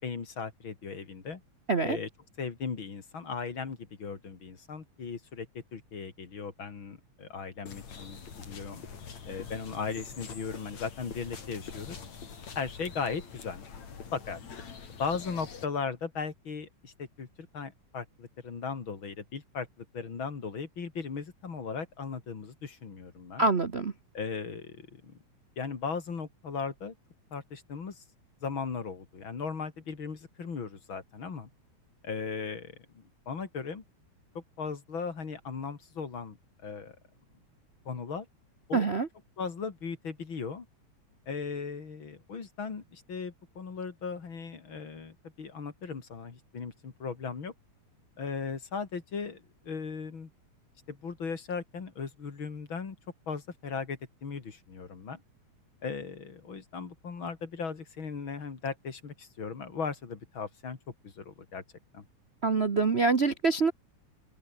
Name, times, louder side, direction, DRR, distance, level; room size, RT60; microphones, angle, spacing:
voice 1, 0.0-1.4 1.8-2.1 2.4-5.5 5.7-8.2 8.5-8.8 9.3-12.0 12.5-13.6 14.1-14.4 14.9-23.4 24.1-25.2 25.6-26.9 27.3-28.0 28.4-31.5 32.0-33.8 34.3-36.4 36.6-37.0 37.8-38.3 38.7-38.9 39.4-40.7 41.3-47.5 48.2-50.3 50.9-53.0 53.3-55.2 55.8-60.8 61.0-61.6 61.9-62.1, left 5 dB, 45° left, 3.3 m, -37 dB
sound 1, 7.7-15.7, left 6 dB, 65° left, 4.6 m, -45 dB
voice 2, 23.4-23.9 38.7-39.1 62.4-63.7, right 4 dB, 80° right, 0.5 m, -25 dB
omnidirectional pair, 3.3 m